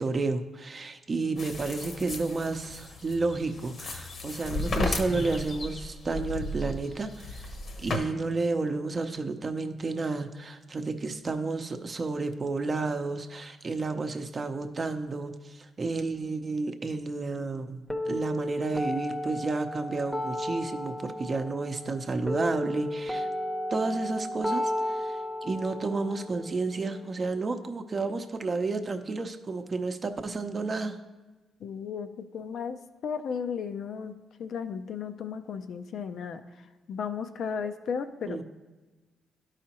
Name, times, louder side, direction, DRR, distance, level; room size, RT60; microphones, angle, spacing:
voice 1, 0.0-7.5 7.8-23.3 23.7-31.0 38.3-38.4, right 3 dB, 40° right, 7 dB, 0.6 m, -31 dB
sound 1, 1.4-8.0, left 2 dB, 55° left, 0.9 m, -35 dB
sound 2, 17.9-27.9, left 1 dB, 5° left, 0.7 m, -34 dB
voice 2, 31.6-32.1 32.3-32.8 33.0-34.1 34.4-36.4 36.9-38.4, left 6 dB, 70° left, 8 dB, 0.5 m, -34 dB
11.5 x 4.9 x 2.9 m, 1.2 s
cardioid pair, 80°, 0 cm